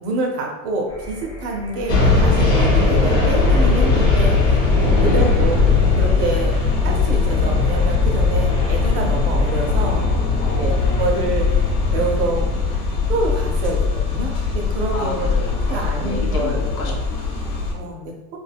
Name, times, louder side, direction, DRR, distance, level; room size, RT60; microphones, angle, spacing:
voice 1, 0.0-4.4 5.0-5.6 6.0-6.6 6.8-10.1 10.6-11.5 11.9-12.5 13.1-15.3 15.7-17.0 17.7-18.4, right 2 dB, 45° right, 1 dB, 0.5 m, -26 dB
sound 1, 0.9-9.0, left 1 dB, 5° left, 0.4 m, -36 dB
sound 2, 1.9-17.7, left 3 dB, 30° left, 0.9 m, -19 dB
voice 2, 5.0-5.4 10.4-11.2 14.9-17.7, left 3 dB, 55° left, 0 dB, 0.8 m, -31 dB
2.6 x 2.2 x 3.3 m, 1.0 s
supercardioid pair, 155°, 49 cm